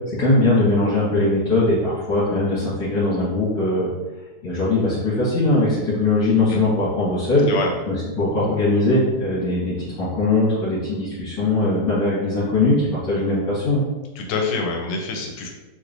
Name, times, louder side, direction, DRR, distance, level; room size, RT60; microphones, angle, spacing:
voice 1, 0.1-3.9 4.4-7.5 7.9-13.9, left 2 dB, 60° left, -10 dB, 1.7 m, -20 dB
voice 2, 7.5-7.8 14.2-15.5, left 3 dB, 80° left, 1 dB, 1.5 m, -26 dB
3.6 x 3.0 x 2.5 m, 1.2 s
omnidirectional pair, 2.4 m